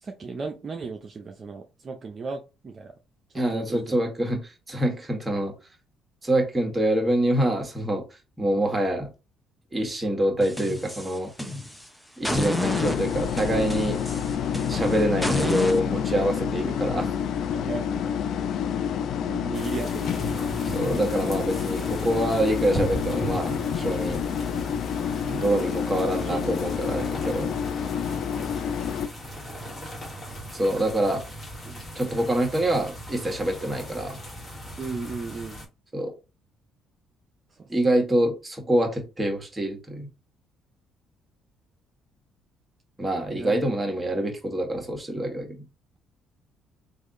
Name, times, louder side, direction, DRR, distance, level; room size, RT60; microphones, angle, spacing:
voice 1, 0.0-2.9 3.3-4.0 16.9-17.1 17.5-17.9 19.2-20.4 26.2-26.6 34.8-35.6 37.5-38.1 43.3-43.6, right 4 dB, 45° right, 0.6 m, -36 dB
voice 2, 3.3-5.5 6.2-8.0 8.4-9.1 9.7-11.3 12.2-14.0 14.5-17.1 20.7-24.2 25.2-27.5 30.5-31.2 31.6-34.2 35.9-36.1 37.7-40.1 43.0-45.6, right 1 dB, 20° right, 1.5 m, -26 dB
sound 1, 10.4-11.8 12.2-15.8, left 1 dB, 5° left, 0.8 m, -30 dB
sound 2, 12.6-29.1, left 7 dB, 65° left, 0.4 m, -28 dB
sound 3, 19.5-35.7, equal, 30° left, 1.5 m, -38 dB
3.3 x 2.5 x 3.8 m
supercardioid pair, 65°, 0 cm